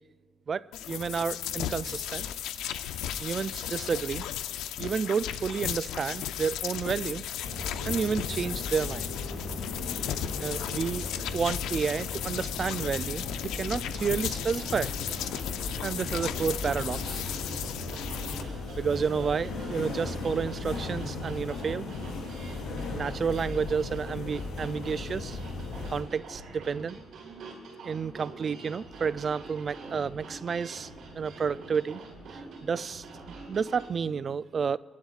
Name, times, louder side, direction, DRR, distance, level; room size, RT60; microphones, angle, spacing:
voice 1, 0.5-2.3 3.2-4.3 4.8-7.2 7.8-9.1 10.4-11.1 11.3-14.9 15.8-17.2 18.8-21.9 22.9-25.4 25.9-27.0 27.8-32.0 32.3-34.8, right 6 dB, 45° right, 0.3 m, -31 dB
sound 1, 0.7-18.4, left 10 dB, 90° left, 0.5 m, -35 dB
sound 2, 7.4-26.0, left 3 dB, 75° left, 4.2 m, -37 dB
sound 3, 14.2-33.9, right 2 dB, 70° right, 4.1 m, -45 dB
25.0 x 11.5 x 2.4 m
cardioid pair, 90°, 0 cm